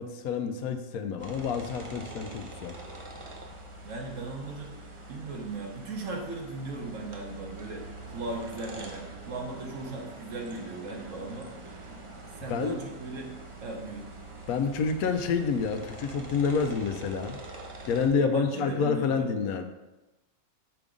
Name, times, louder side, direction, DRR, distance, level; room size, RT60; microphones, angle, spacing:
voice 1, 0.0-2.8 12.5-12.8 14.5-17.4 17.9-19.6, left 5 dB, 85° left, 7 dB, 1.1 m, -28 dB
sound 1, 1.2-18.1, right 2 dB, 40° right, 0.4 m, -44 dB
voice 2, 3.8-11.9 12.4-13.3 13.6-14.1 18.2-19.3, right 2 dB, 60° right, 1 dB, 1.3 m, -38 dB
5.8 x 3.6 x 5.1 m, 1.0 s
omnidirectional pair, 1.5 m